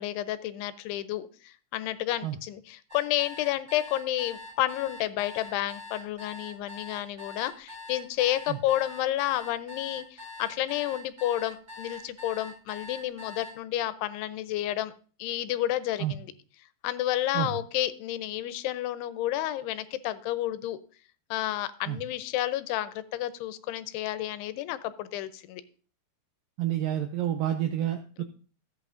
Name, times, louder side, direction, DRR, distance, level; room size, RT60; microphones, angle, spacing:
voice 1, 0.0-14.9 15.2-16.3 16.8-20.8 21.3-25.6 28.2-28.3, left 14 dB, 85° left, 13 dB, 2.6 m, -31 dB
sound 1, 2.9-13.5, left 2 dB, 5° right, 4.1 m, -43 dB
voice 2, 26.6-28.2, right 11 dB, 85° right, 6 dB, 2.0 m, -29 dB
14.5 x 8.3 x 2.5 m, 0.39 s
omnidirectional pair, 4.7 m